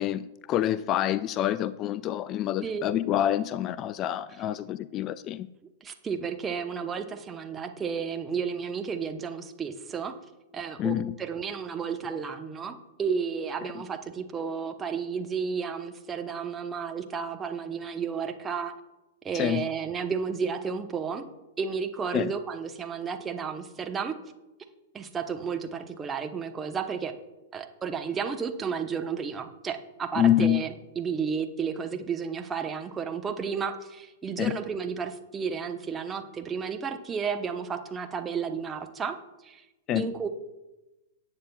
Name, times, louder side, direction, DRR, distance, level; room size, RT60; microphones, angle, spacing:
voice 1, 0.0-5.5 10.8-11.1 19.3-19.6 22.1-22.3 30.2-30.6 34.4-34.6 39.9-40.1, left 11 dB, 30° left, 16 dB, 0.3 m, -27 dB
voice 2, 5.8-10.1 10.5-18.7 19.2-21.2 21.6-24.1 24.9-27.1 27.5-39.2 39.4-39.6 39.9-40.3, right 6 dB, 20° right, 6 dB, 0.9 m, -32 dB
18.0 x 8.6 x 2.3 m, 1.0 s
figure-of-eight pair, 105°, 0 cm